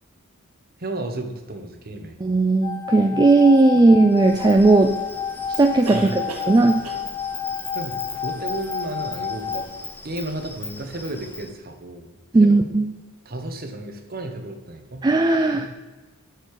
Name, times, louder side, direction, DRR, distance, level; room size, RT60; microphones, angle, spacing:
voice 1, 0.8-2.1 3.7-3.8 5.9-6.2 7.7-9.7 10.0-12.1 12.4-12.6 13.2-15.0 15.5-15.7, right 2 dB, 45° right, 5 dB, 1.1 m, -33 dB
voice 2, 2.2-5.0 5.5-6.8 12.3-12.9 15.0-15.7, right 2 dB, 20° right, 5 dB, 0.3 m, -16 dB
sound 1, 2.6-9.6, left 7 dB, 75° left, 2.8 m, -30 dB
sound 2, 3.8-3.9 5.8-6.6 6.8-7.2 9.1-9.2 9.5-9.6, right 2 dB, 85° right, 1.4 m, -36 dB
Insect, 4.1-11.5, left 2 dB, 10° left, 0.8 m, -39 dB
7.6 x 6.6 x 4.8 m, 1.2 s
head